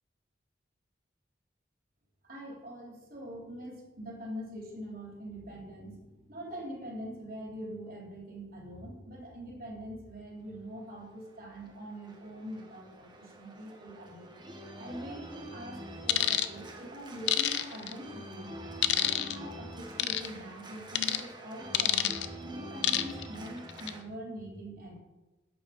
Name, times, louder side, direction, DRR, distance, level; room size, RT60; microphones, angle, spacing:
voice 1, 2.2-14.3 14.8-18.5 18.9-22.1 22.4-24.9, equal, 50° right, -1 dB, 3.3 m, -43 dB
Organ, 10.9-24.0, right 1 dB, 25° right, 1.3 m, -46 dB
sound 1, 16.1-16.5 17.3-17.9 18.8-19.4 20.0-20.3 21.0-21.2 21.7-22.3 22.8-23.2 23.7-23.9, left 12 dB, 70° left, 0.7 m, -27 dB
11.5 x 8.6 x 5.1 m, 1.1 s
head